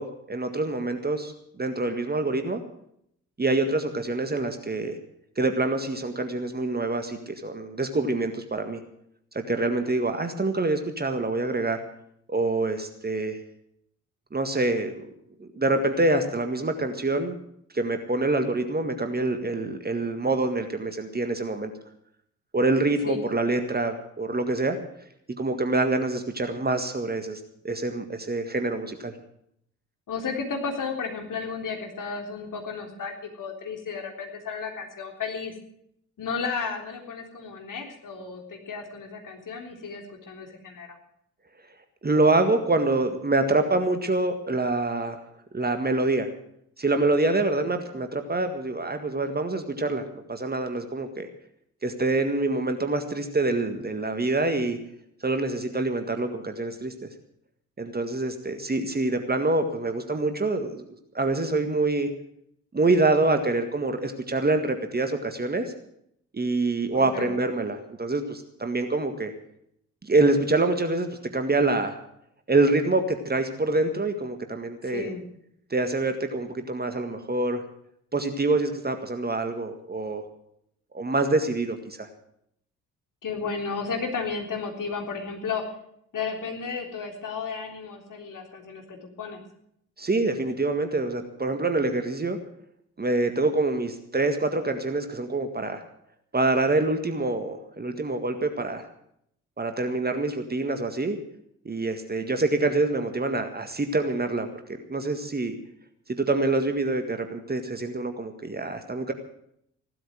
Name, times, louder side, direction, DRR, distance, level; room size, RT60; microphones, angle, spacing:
voice 1, 0.0-2.6 3.4-5.0 5.4-8.8 9.3-11.8 12.3-13.4 14.3-15.1 15.4-17.4 17.7-21.7 22.5-24.8 25.4-29.1 42.0-45.2 45.5-46.3 46.8-51.3 51.8-54.8 55.2-56.9 57.8-60.8 61.1-62.1 62.7-65.7 66.3-69.3 70.0-72.0 72.5-75.1 75.7-77.6 78.1-80.2 80.9-82.1 90.0-92.4 93.0-95.8 96.3-98.8 99.6-101.2 101.7-104.6 104.9-105.6 106.1-109.1, right 2 dB, 20° right, 7 dB, 1.8 m, -26 dB
voice 2, 30.1-35.5 36.2-41.0 66.9-67.3 74.9-75.2 83.2-85.6 86.1-89.4, left 5 dB, 45° left, 3 dB, 3.7 m, -33 dB
16.0 x 12.5 x 6.3 m, 0.71 s
figure-of-eight pair, 45°, 44 cm